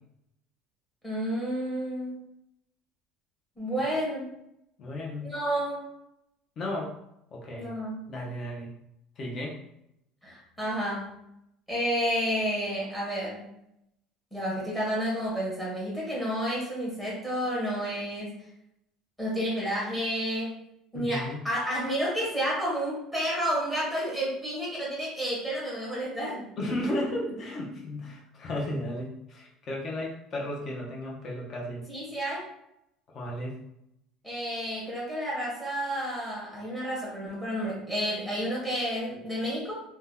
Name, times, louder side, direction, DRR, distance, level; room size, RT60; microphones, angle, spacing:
voice 1, 1.0-2.2 3.6-4.3 5.2-5.8 7.6-8.0 10.2-11.1 11.7-13.5 14.3-18.3 19.2-20.5 20.9-26.5 31.9-32.4 34.2-39.8, equal, 10° left, -6 dB, 1.1 m, -30 dB
voice 2, 4.8-5.3 6.6-7.0 7.3-7.7 8.1-8.7 9.2-9.6 20.9-21.5 26.6-31.8 33.1-33.6, left 1 dB, 35° left, -2 dB, 0.7 m, -34 dB
2.7 x 2.2 x 3.5 m, 0.79 s
cardioid pair, 155°, 0 cm